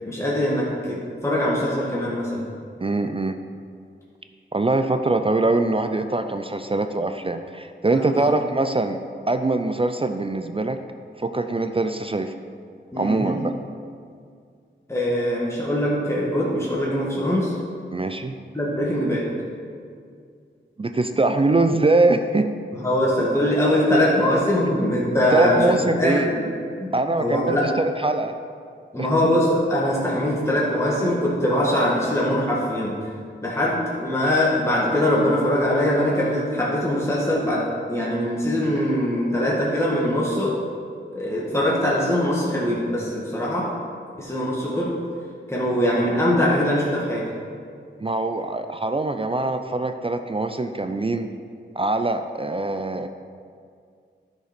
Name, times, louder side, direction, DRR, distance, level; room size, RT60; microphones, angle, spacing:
voice 1, 0.0-2.4 7.9-8.2 12.9-13.4 14.9-17.5 18.5-19.3 22.7-26.5 26.8-27.7 28.9-33.1 33.4-40.6 41.1-43.7 44.2-45.0 45.5-47.3, left 1 dB, 15° left, -5 dB, 1.8 m, -22 dB
voice 2, 2.8-3.4 4.5-9.0 9.3-10.8 11.2-12.4 13.0-13.6 17.9-18.4 20.8-22.5 25.3-26.3 26.9-28.3 29.0-29.1 48.0-51.3 51.7-53.1, right 2 dB, 25° right, 8 dB, 0.5 m, -23 dB
10.5 x 5.2 x 5.2 m, 2.2 s
cardioid pair, 45°, 20 cm